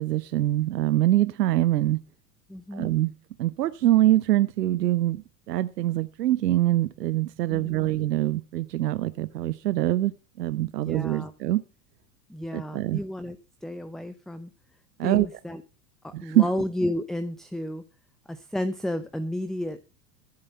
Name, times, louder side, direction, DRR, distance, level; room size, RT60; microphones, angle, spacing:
voice 1, 0.0-2.0 2.7-3.1 3.4-11.6 12.5-13.0 15.0-15.3 16.1-16.4, right 14 dB, 85° right, 0.7 m, -24 dB
voice 2, 2.5-2.9 7.5-7.9 10.8-11.3 12.3-14.5 15.0-15.6 16.0-17.8 18.3-19.8, left 1 dB, ahead, 0.6 m, -32 dB
14.5 x 7.9 x 5.5 m
hypercardioid pair, 95°, 47 cm